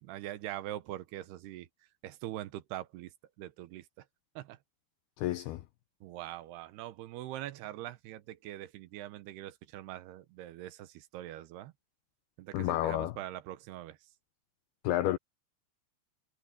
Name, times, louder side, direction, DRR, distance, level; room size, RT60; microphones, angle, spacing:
voice 1, 0.0-1.7 2.0-3.1 3.4-4.1 4.4-4.6 6.0-11.7 12.4-14.1, right 14 dB, 75° right, 2.7 m, -43 dB
voice 2, 5.2-5.6 12.5-13.1 14.8-15.2, left 15 dB, 85° left, 2.2 m, -30 dB
omnidirectional pair, 5.3 m